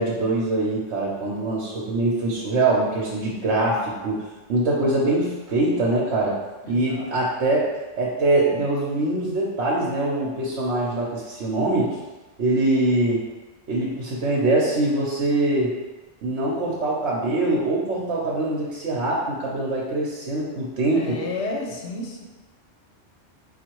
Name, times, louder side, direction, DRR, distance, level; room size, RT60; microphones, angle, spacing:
voice 1, 0.0-4.2 4.5-6.4 6.7-7.7 8.0-11.9 12.4-13.2 13.7-15.7 16.2-21.2, right 2 dB, 70° right, -4 dB, 1.0 m, -23 dB
voice 2, 6.6-7.1 20.9-22.2, left 2 dB, 75° left, 0 dB, 1.0 m, -31 dB
4.0 x 2.4 x 4.5 m, 1.2 s
omnidirectional pair, 1.3 m